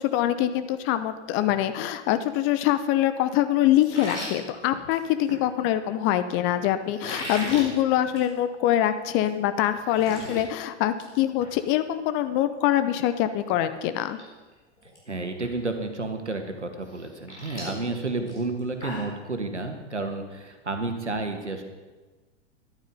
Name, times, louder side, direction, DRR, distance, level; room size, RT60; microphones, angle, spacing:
voice 1, 0.0-14.2, left 12 dB, 35° left, 11 dB, 0.8 m, -24 dB
sound 1, 3.8-5.4 6.9-7.7 8.1-8.3 8.6-8.7 9.2-9.3 9.6-10.4 10.8-11.1 11.4-11.5 13.4-13.5 13.9-14.2 14.5-15.0 15.4-15.5 16.9-19.2, equal, 85° left, 4.7 m, -37 dB
voice 2, 15.1-21.6, right 3 dB, 85° right, 5 dB, 1.8 m, -31 dB
13.0 x 11.5 x 5.5 m, 1.2 s
figure-of-eight pair, 90°, 34 cm